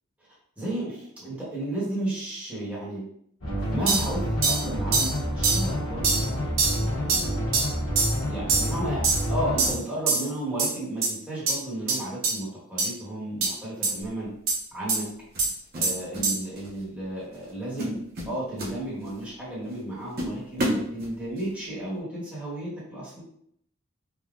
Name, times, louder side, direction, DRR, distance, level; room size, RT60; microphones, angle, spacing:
voice 1, 0.6-3.0 3.7-7.4 8.2-14.3 14.7-15.1 15.7-18.0 18.3-23.2, right 1 dB, 5° right, -9 dB, 1.0 m, -33 dB
sound 1, 3.4-9.7, equal, 80° left, 1.2 m, -28 dB
sound 2, 3.9-4.1 4.4-4.6 4.9-5.1 5.4-5.6 6.0-6.2 6.6-6.8 7.1-7.2 7.5-7.7 8.0-8.1 8.5-8.7 9.0-9.2 9.6-9.8 10.1-10.3 10.6-10.7 11.0-11.1 11.5-11.6 11.9-12.0 12.2-12.3 12.8-12.9 13.4-13.5 13.8-13.9 14.5-14.6 14.9-15.0 15.4-15.5 15.8-15.9 16.2-16.4, right 4 dB, 70° right, 0.8 m, -23 dB
sound 3, 14.0-14.2 15.3-16.3 16.6-16.9 17.3-17.5 17.8-19.3 19.7-19.8 20.2-21.5, equal, 50° right, 0.6 m, -31 dB
3.5 x 2.0 x 2.4 m, 0.68 s
head